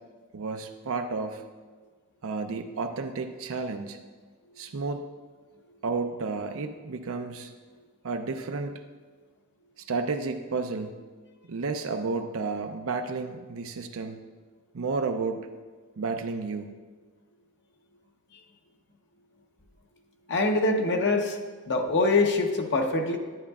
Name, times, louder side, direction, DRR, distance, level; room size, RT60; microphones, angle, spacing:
voice 1, 0.3-1.4 2.2-4.0 4.6-5.1 5.8-7.5 8.0-8.8 9.9-11.0 11.5-14.2 14.7-15.4 16.0-16.7, right 4 dB, 65° right, 5 dB, 0.5 m, -31 dB
voice 2, 20.3-21.4 21.7-23.2, left 2 dB, 55° left, 3 dB, 0.8 m, -24 dB
11.0 x 9.8 x 2.3 m, 1.4 s
head